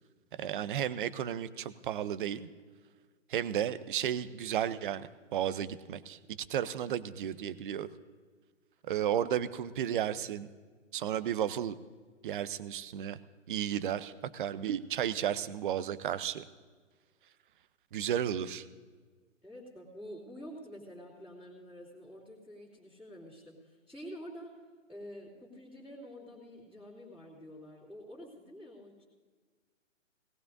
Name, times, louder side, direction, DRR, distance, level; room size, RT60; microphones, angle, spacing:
voice 1, 0.4-2.5 3.3-6.2 6.5-7.9 8.9-10.5 10.9-11.8 12.2-13.2 13.5-16.4 17.9-18.6, right 10 dB, 40° right, 14 dB, 0.7 m, -33 dB
voice 2, 19.4-24.6 24.9-29.0, equal, ahead, -10 dB, 2.8 m, -48 dB
19.5 x 18.0 x 2.6 m, 1.5 s
hypercardioid pair, 140°, 38 cm